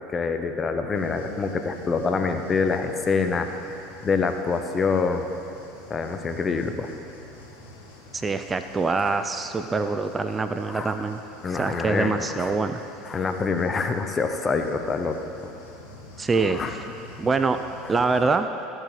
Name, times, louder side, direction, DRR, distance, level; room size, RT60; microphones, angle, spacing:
voice 1, 0.1-3.5 4.0-5.2 5.9-6.9 10.7-10.9 11.4-12.5 13.1-15.5 16.4-16.7, left 4 dB, 30° left, 7 dB, 0.8 m, -26 dB
sound 1, 0.9-18.2, left 2 dB, 65° left, 1.7 m, -46 dB
voice 2, 8.1-11.2 11.5-12.8 16.2-16.8 17.2-17.6 17.9-18.5, right 4 dB, 25° right, 9 dB, 0.4 m, -24 dB
14.0 x 7.6 x 3.3 m, 2.9 s
hypercardioid pair, 75°, 0 cm